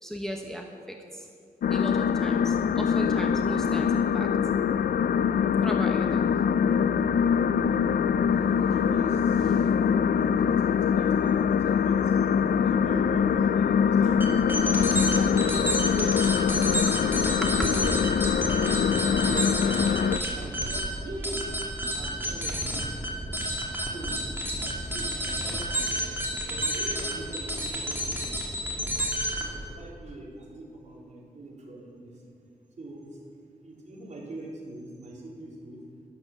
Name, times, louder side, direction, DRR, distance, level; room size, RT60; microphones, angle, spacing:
voice 1, 0.0-1.3 1.7-4.3 5.6-6.4 6.8-7.0 10.0-10.1 15.5-16.2 16.6-16.7 17.4-17.7, equal, 5° left, 1 dB, 1.0 m, -36 dB
sound 1, 1.6-20.2, left 7 dB, 75° left, 0.4 m, -23 dB
voice 2, 8.9-14.6 14.9-16.0 16.8-17.9 18.6-21.5 21.9-23.1 23.7-24.2 24.6-25.9 26.5-29.1 29.4-32.3 32.8-33.2 33.6-35.8, right 2 dB, 50° right, -4 dB, 3.8 m, -43 dB
sound 2, 14.2-29.6, equal, 15° right, 2.5 m, -30 dB
12.0 x 11.5 x 7.3 m, 2.3 s
wide cardioid pair, 125°, 15 cm